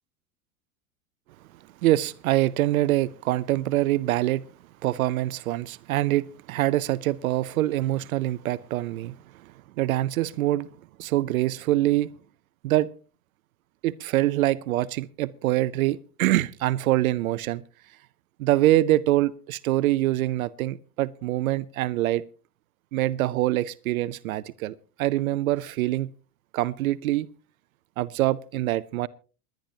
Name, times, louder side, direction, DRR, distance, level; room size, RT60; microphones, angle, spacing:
voice 1, 1.8-4.4 4.8-9.2 9.8-10.7 11.0-12.1 12.6-12.9 13.8-17.6 18.4-22.2 22.9-26.1 26.5-27.3 28.0-29.1, right 15 dB, 70° right, 0.7 m, -24 dB
28.0 x 10.5 x 2.8 m
hypercardioid pair, 90°, 44 cm